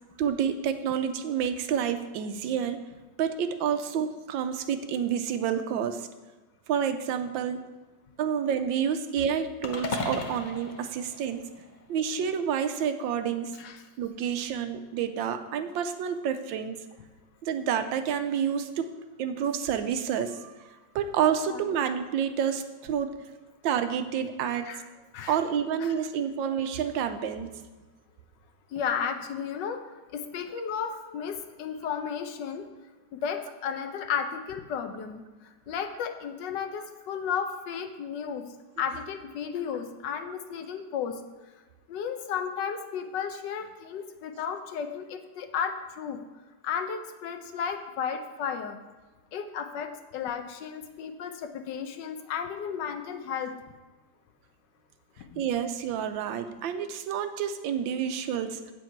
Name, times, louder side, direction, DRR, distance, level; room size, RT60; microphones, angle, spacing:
voice 1, 0.2-2.8 3.2-6.1 6.7-7.6 8.2-11.4 11.9-13.5 14.0-16.8 17.4-18.9 19.2-20.5 20.9-23.1 23.6-24.7 25.3-27.5 55.4-58.7, right 8 dB, 90° right, 9 dB, 1.4 m, -29 dB
sound 1, 9.6-12.0, left 3 dB, 45° left, 0.6 m, -36 dB
voice 2, 28.7-29.8 30.1-32.7 33.1-35.2 35.7-38.5 38.8-41.2 41.9-46.2 46.6-48.8 49.3-53.6 55.3-55.5, left 7 dB, 75° left, 7 dB, 1.3 m, -33 dB
8.1 x 8.0 x 4.5 m, 1.2 s
omnidirectional pair, 2.0 m